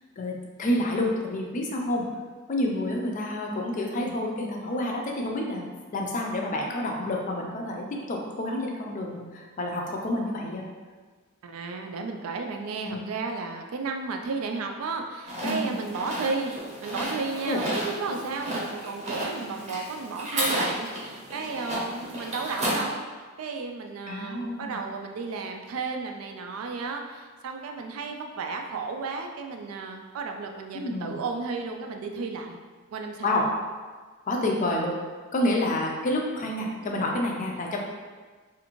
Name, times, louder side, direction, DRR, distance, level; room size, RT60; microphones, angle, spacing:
voice 1, 0.2-2.1 2.5-5.7 5.9-10.6 12.8-13.0 15.4-15.8 17.4-17.6 24.1-24.8 30.7-31.2 33.2-33.5 34.3-34.9 35.3-37.8, left 1 dB, 40° left, 0 dB, 0.4 m, -29 dB
voice 2, 11.4-16.5 16.8-23.0 23.4-32.6 32.9-33.4 34.4-34.7, right 4 dB, 75° right, 3 dB, 0.3 m, -33 dB
sound 1, 15.3-22.8, right 1 dB, 30° right, 0.7 m, -33 dB
2.5 x 2.5 x 2.9 m, 1.4 s
head